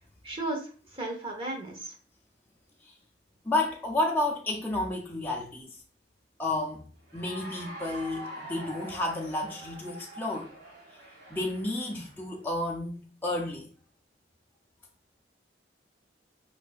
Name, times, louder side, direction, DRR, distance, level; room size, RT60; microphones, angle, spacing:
voice 1, 0.2-1.9, right 2 dB, 30° right, 1.2 m, -35 dB
voice 2, 3.4-5.8 6.4-10.5 10.9-11.0 11.3-13.7, left 2 dB, 10° left, 0.5 m, -31 dB
Cheering / Applause, 7.0-12.2, right 1 dB, 65° right, 2.3 m, -45 dB
4.9 x 4.0 x 2.5 m
head